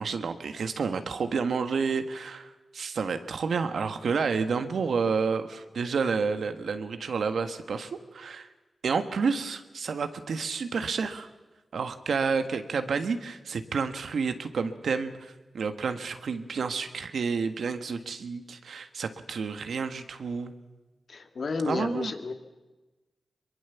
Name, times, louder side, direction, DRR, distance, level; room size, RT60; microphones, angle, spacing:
voice 1, 0.0-8.5 8.8-11.3 11.7-20.5 21.7-22.1, right 5 dB, 75° right, 9 dB, 1.5 m, -30 dB
voice 2, 21.1-22.3, left 4 dB, 65° left, 6 dB, 2.1 m, -31 dB
22.5 x 22.0 x 7.1 m, 1.2 s
cardioid pair, 45°, 0 cm